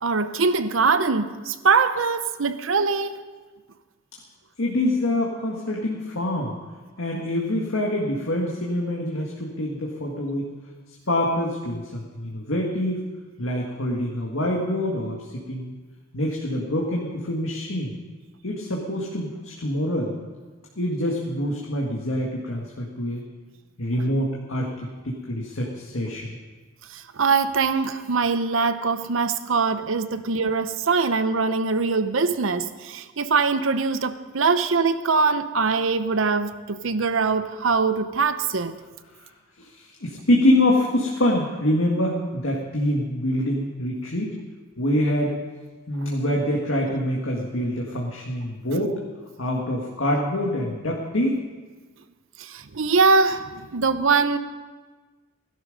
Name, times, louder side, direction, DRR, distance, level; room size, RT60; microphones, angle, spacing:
voice 1, 0.0-3.2 26.9-38.8 46.0-46.1 52.4-54.4, right 4 dB, 80° right, 11 dB, 0.8 m, -22 dB
voice 2, 4.6-6.6 7.0-10.5 11.1-13.1 13.4-15.7 16.1-18.0 18.4-20.1 20.8-23.2 23.8-26.3 39.6-44.4 44.8-45.3 45.9-49.0 49.4-51.4, left 1 dB, 85° left, -2 dB, 1.8 m, -25 dB
17.0 x 11.5 x 5.3 m, 1.3 s
head